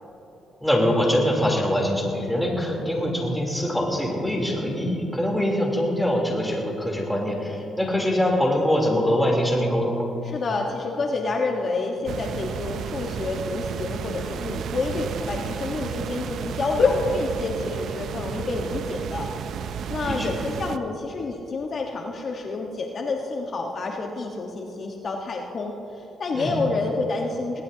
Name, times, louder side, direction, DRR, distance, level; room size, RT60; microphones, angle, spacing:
voice 1, 0.6-10.1 20.1-20.3 26.3-26.6, equal, ahead, -2 dB, 3.4 m, -23 dB
voice 2, 10.2-19.3 19.9-27.6, left 3 dB, 50° left, 1 dB, 1.3 m, -28 dB
sound 1, 12.1-20.8, right 8 dB, 70° right, 0.5 m, -32 dB
22.0 x 18.0 x 2.9 m, 2.9 s
cardioid pair, 90°, 0 cm